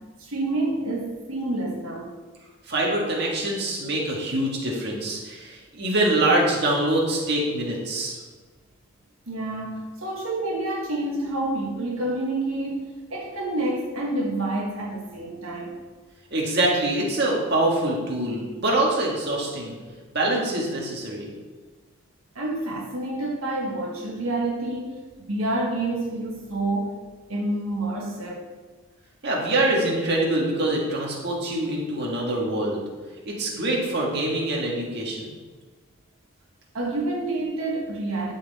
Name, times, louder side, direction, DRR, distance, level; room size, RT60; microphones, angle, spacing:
voice 1, 0.0-2.1 9.3-15.8 22.3-27.0 27.3-28.5 36.7-38.3, right 2 dB, 80° right, -3 dB, 1.3 m, -28 dB
voice 2, 2.7-8.2 16.3-19.8 20.1-21.3 29.2-32.8 33.3-35.3, right 1 dB, 50° right, -3 dB, 1.7 m, -24 dB
12.0 x 4.4 x 4.1 m, 1.4 s
head